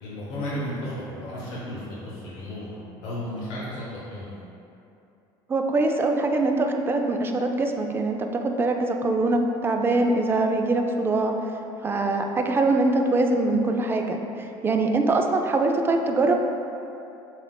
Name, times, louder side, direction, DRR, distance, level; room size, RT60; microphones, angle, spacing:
voice 1, 0.0-4.4, left 1 dB, 75° left, -6 dB, 0.8 m, -34 dB
voice 2, 5.5-11.3 11.8-16.3, right 2 dB, 20° right, 3 dB, 0.3 m, -23 dB
7.1 x 2.4 x 2.2 m, 2.8 s
supercardioid pair, 110°, 11 cm